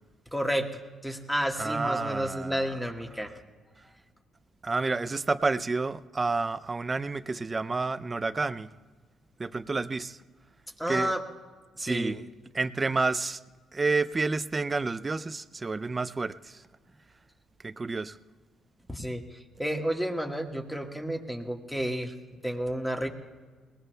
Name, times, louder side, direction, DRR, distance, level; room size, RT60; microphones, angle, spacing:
voice 1, 0.3-0.7 1.0-3.3 10.8-11.2 11.8-12.2 18.9-19.2 19.6-22.1 22.4-23.1, equal, 5° left, 3 dB, 1.5 m, -31 dB
voice 2, 1.6-2.8 4.6-8.7 9.4-10.2 10.9-11.1 11.8-12.2 12.5-13.4 13.7-16.6 17.6-18.2, right 3 dB, 25° right, 15 dB, 0.5 m, -29 dB
22.0 x 19.0 x 2.3 m, 1.5 s
cardioid pair, 90°, 0 cm